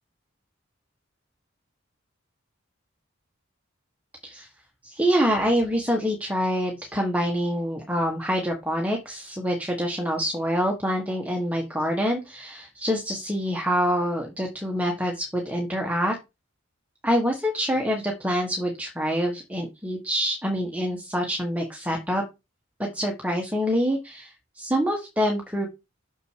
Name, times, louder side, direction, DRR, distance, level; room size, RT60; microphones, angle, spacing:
voice 1, 4.8-16.2 17.0-22.2 22.9-25.7, equal, 5° right, 1 dB, 1.5 m, -26 dB
6.7 x 6.3 x 5.0 m, 0.24 s
head